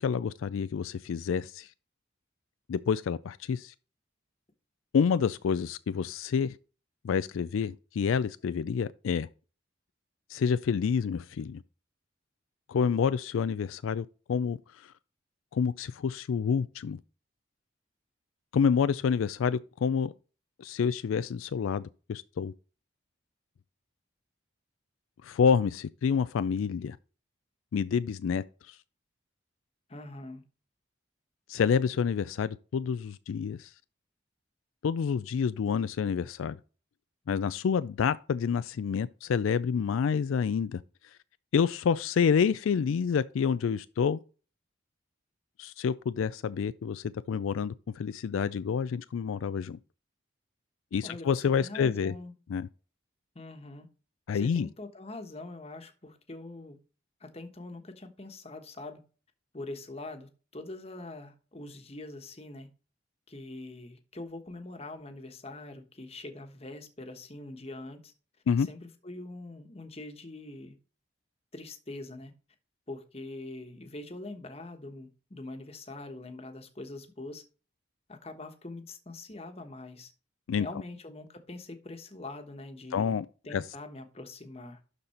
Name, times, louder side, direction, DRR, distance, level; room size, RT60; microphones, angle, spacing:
voice 1, 0.0-1.7 2.7-3.7 4.9-6.6 7.0-9.3 10.3-11.6 12.7-14.9 15.5-17.0 18.5-20.1 20.6-22.5 25.2-27.0 27.7-28.8 31.5-33.7 34.8-36.6 37.3-40.8 41.5-44.2 45.6-49.8 50.9-52.1 52.5-52.7 54.3-54.7 68.5-68.7 80.5-80.7 82.9-83.3 83.5-83.6, left 6 dB, 80° left, 0.3 m, -28 dB
voice 2, 29.9-30.4 51.0-52.3 53.3-53.9 54.3-56.8 57.2-59.0 59.5-62.7 63.3-68.1 68.6-70.8 71.5-72.3 72.9-77.4 78.1-80.1 80.6-83.2 83.4-84.8, left 2 dB, 30° left, 1.2 m, -43 dB
12.0 x 4.1 x 4.3 m
head